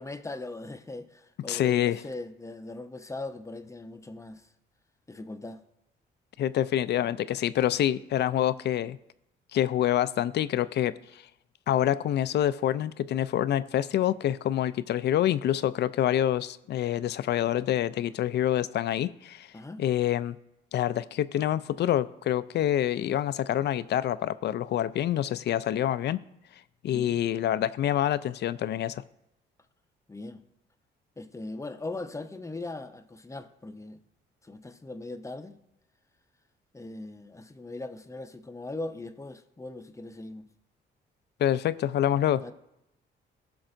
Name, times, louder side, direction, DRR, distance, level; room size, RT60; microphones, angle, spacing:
voice 1, 0.0-4.5 5.1-5.6 19.5-19.8 26.9-27.2 30.1-30.4 31.2-34.0 34.4-35.6 36.7-40.5 42.4-42.5, left 2 dB, 15° left, 9 dB, 0.6 m, -39 dB
voice 2, 1.5-2.0 6.4-9.0 9.5-11.2 11.7-19.5 19.8-20.4 20.7-26.2 26.8-29.0 41.4-42.4, left 11 dB, 60° left, 16 dB, 0.4 m, -26 dB
16.0 x 6.0 x 2.6 m, 0.86 s
cardioid pair, 90°, 20 cm